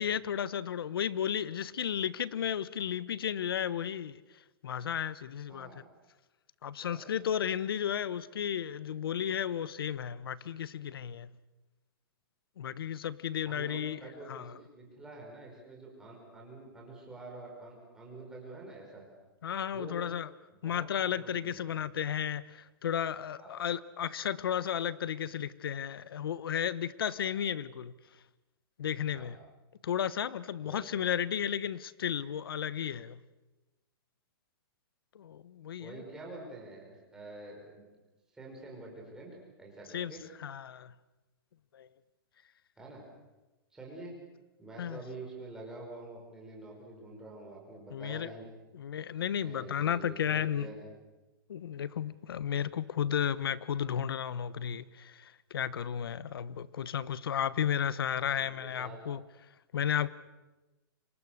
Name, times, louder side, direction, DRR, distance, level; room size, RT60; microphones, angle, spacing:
voice 1, 0.0-4.2 4.6-5.7 6.6-11.3 12.6-14.0 14.3-14.5 19.4-20.3 20.6-27.9 28.8-29.4 29.8-33.2 35.1-36.0 39.9-40.1 40.4-40.9 41.7-41.9 44.8-45.0 47.9-48.3 48.7-50.7 51.5-59.2 59.7-60.1, left 9 dB, 75° left, 1.2 m, -33 dB
voice 2, 5.5-5.9 6.8-7.1 13.4-19.1 19.7-20.0 20.6-21.6 23.4-23.6 29.1-29.3 30.6-31.0 35.8-37.9 38.3-40.2 42.8-43.0 43.7-44.1 44.6-48.5 49.4-50.9 58.4-59.0, right 2 dB, 5° right, 5.5 m, -47 dB
29.5 x 26.0 x 6.7 m
hypercardioid pair, 175°, 12 cm